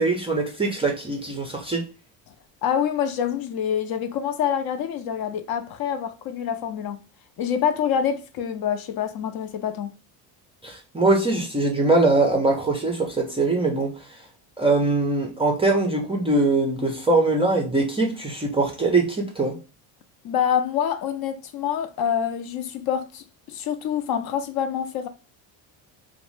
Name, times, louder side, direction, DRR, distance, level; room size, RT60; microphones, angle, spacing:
voice 1, 0.0-1.9 10.6-14.0 14.6-19.6, right 2 dB, 15° right, 0.3 m, -22 dB
voice 2, 2.6-7.0 7.4-9.9 20.2-25.1, left 8 dB, 50° left, 0.4 m, -26 dB
2.5 x 2.0 x 3.0 m
cardioid pair, 105°, 48 cm